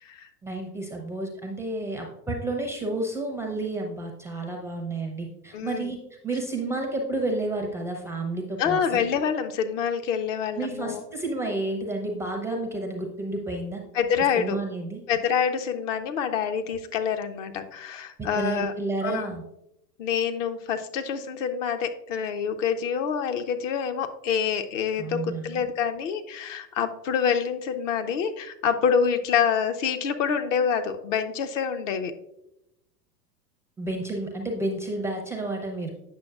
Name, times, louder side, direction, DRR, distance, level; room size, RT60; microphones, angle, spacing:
voice 1, 0.4-6.0 6.2-9.0 10.6-13.8 14.3-15.0 18.2-19.4 25.0-25.6 33.8-35.9, right 2 dB, 5° right, 1 dB, 0.5 m, -31 dB
voice 2, 5.5-5.9 8.6-11.0 13.9-14.6 15.1-18.7 19.0-19.3 20.0-32.1, left 7 dB, 50° left, 7 dB, 0.7 m, -26 dB
8.5 x 6.2 x 2.3 m, 0.84 s
figure-of-eight pair, 90°, 49 cm